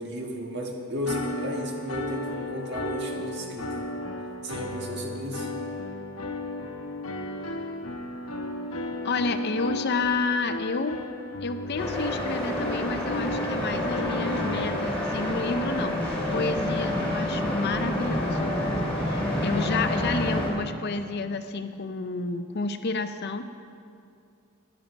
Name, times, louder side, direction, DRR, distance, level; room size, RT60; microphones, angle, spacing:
voice 1, 0.0-3.8 4.4-5.5, equal, 50° right, 1 dB, 1.6 m, -34 dB
sound 1, 1.0-14.8, left 2 dB, 80° left, 1.1 m, -34 dB
voice 2, 9.0-11.0 11.4-18.6 19.0-23.5, left 3 dB, 50° left, 9 dB, 0.6 m, -30 dB
sound 2, 11.8-20.5, left 1 dB, 5° left, 2.4 m, -28 dB
13.0 x 10.5 x 5.2 m, 2.5 s
head